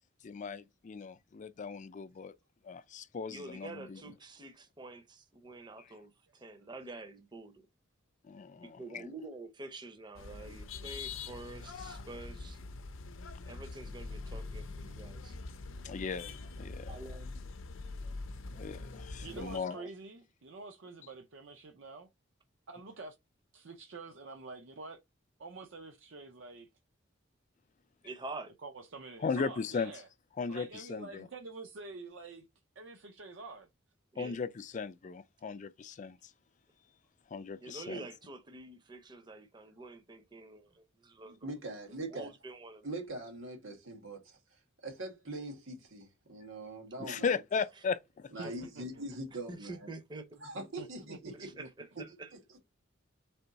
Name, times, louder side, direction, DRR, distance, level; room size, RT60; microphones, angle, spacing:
voice 1, 0.2-2.3 2.6-4.0 8.3-9.1 15.8-17.0 18.5-19.8 29.2-29.9 30.4-31.3 34.2-36.2 37.3-38.0 47.0-48.3, left 5 dB, 40° left, 0.4 m, -37 dB
voice 2, 3.3-7.7 8.6-12.6 13.5-15.4 16.9-17.3 19.3-19.9 28.0-28.5 34.1-34.4 37.6-41.4 42.1-43.0 48.4-48.7 49.3-50.3 50.8-50.9 51.3-52.3, right 2 dB, 25° right, 0.6 m, -47 dB
sound 1, 10.1-19.6, left 3 dB, 90° left, 0.5 m, -44 dB
voice 3, 19.2-22.1 22.7-23.1 23.5-25.0 25.4-26.7 28.6-30.1 30.5-32.5 32.8-33.7 41.2-41.4 48.4-49.1 50.8-51.7, right 3 dB, 70° right, 0.6 m, -47 dB
voice 4, 41.4-42.3 42.8-44.4 44.8-47.4 48.3-49.9 50.4-51.5, right 2 dB, 90° right, 1.9 m, -42 dB
3.7 x 3.4 x 4.0 m
head